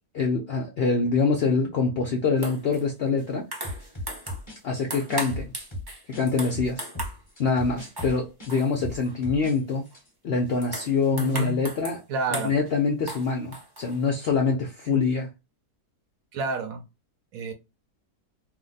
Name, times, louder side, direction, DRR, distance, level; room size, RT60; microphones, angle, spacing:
voice 1, 0.1-3.5 4.6-5.5 6.1-6.9 7.4-9.9 10.2-12.0 12.3-15.3, left 4 dB, 65° left, 0.6 m, -25 dB
sound 1, 2.4-2.8 3.2-4.5 4.7-7.2 7.6-8.2 8.5-9.1 9.7-9.9 10.4-12.0 12.3-12.7 13.1-14.1, right 1 dB, 25° right, 0.5 m, -38 dB
sound 2, 3.6-6.3 6.5-9.6 9.9-10.1, equal, 20° left, 1.1 m, -37 dB
voice 2, 11.1-11.7 12.1-12.5 14.9-15.0 16.3-16.8 17.3-17.5, right 2 dB, 70° right, 1.0 m, -29 dB
2.7 x 2.2 x 3.9 m
omnidirectional pair, 1.6 m